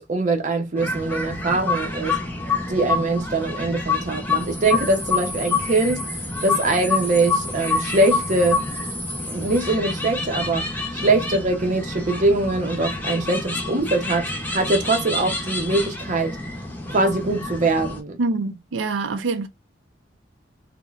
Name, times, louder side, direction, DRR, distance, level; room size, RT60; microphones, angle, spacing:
voice 1, 0.0-2.2 2.7-6.0 6.4-8.6 9.3-16.4 16.9-18.2, right 2 dB, 40° right, 0.6 m, -22 dB
sound 1, 0.8-18.0, left 3 dB, 10° left, 0.6 m, -27 dB
voice 2, 18.2-19.5, right 3 dB, 85° right, 0.4 m, -25 dB
2.9 x 2.1 x 2.3 m
head